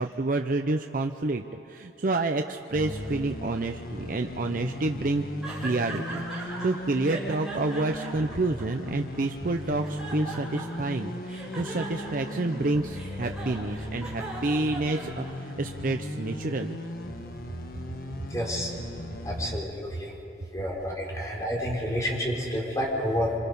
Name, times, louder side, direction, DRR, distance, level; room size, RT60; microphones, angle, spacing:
voice 1, 0.0-5.2 5.6-16.8, right 2 dB, 50° right, 5 dB, 0.6 m, -29 dB
sound 1, 2.7-19.6, left 1 dB, 55° left, 1.4 m, -37 dB
sound 2, 5.4-6.7 7.0-9.2 9.6-10.9 11.2-15.5, right 2 dB, 5° right, 5.5 m, -39 dB
voice 2, 18.3-18.7 19.2-20.1 20.5-23.4, equal, 20° left, -3 dB, 4.0 m, -29 dB
26.5 x 25.5 x 5.4 m, 2.8 s
head